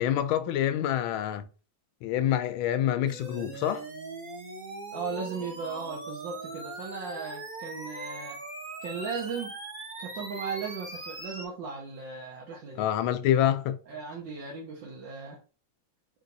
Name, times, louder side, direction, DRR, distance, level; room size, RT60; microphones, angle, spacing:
voice 1, 0.0-1.5 2.0-3.8 12.8-13.8, left 11 dB, 90° left, 1.4 m, -26 dB
sound 1, 3.1-11.5, right 3 dB, 40° right, 0.7 m, -40 dB
voice 2, 4.9-8.4 8.8-9.5 10.0-12.8 13.9-15.4, right 5 dB, 70° right, 1.5 m, -37 dB
4.6 x 3.9 x 2.6 m
omnidirectional pair, 2.2 m